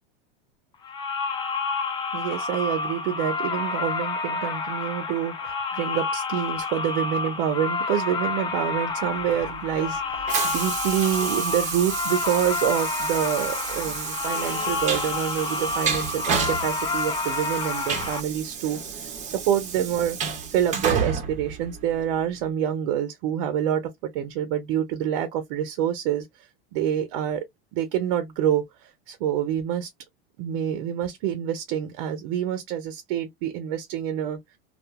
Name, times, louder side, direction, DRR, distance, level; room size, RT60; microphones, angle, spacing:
sound 1, 0.8-18.2, left 4 dB, 15° left, 0.4 m, -29 dB
voice 1, 2.1-23.8 24.1-27.4 27.7-29.9 30.4-34.4, right 10 dB, 55° right, 0.6 m, -27 dB
Train, 9.1-22.3, right 6 dB, 25° right, 0.7 m, -31 dB
2.4 x 2.2 x 2.8 m
supercardioid pair, 130°, 29 cm